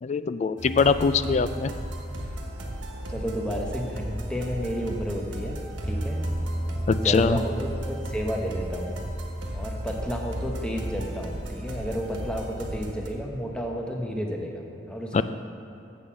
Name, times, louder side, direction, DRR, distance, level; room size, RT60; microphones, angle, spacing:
voice 1, 0.0-1.7 6.9-7.4 15.1-15.2, left 5 dB, 35° left, 12 dB, 0.3 m, -22 dB
sound 1, 0.6-13.1, equal, 80° right, 1.2 m, -33 dB
voice 2, 3.1-6.2 6.9-9.0 9.5-15.2, equal, 5° left, 0 dB, 0.9 m, -32 dB
7.4 x 6.6 x 7.0 m, 2.9 s
head